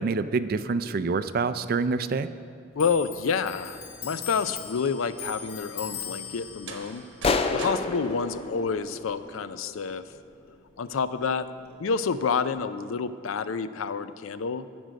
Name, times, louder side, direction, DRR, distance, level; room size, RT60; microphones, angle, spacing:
voice 1, 0.0-2.3, right 4 dB, 45° right, 13 dB, 0.4 m, -26 dB
Clock, 2.7-9.8 10.1-11.4 11.7-12.5, left 6 dB, 50° left, 1.3 m, -41 dB
voice 2, 2.8-7.0 7.5-10.0 10.8-11.5 11.8-14.7, left 5 dB, 90° left, 13 dB, 0.4 m, -28 dB
sound 1, 6.5-9.4, right 4 dB, 70° right, 1.1 m, -44 dB
sound 2, 7.2-9.8, left 3 dB, 30° left, 0.4 m, -29 dB
15.5 x 6.2 x 5.1 m, 2.3 s
head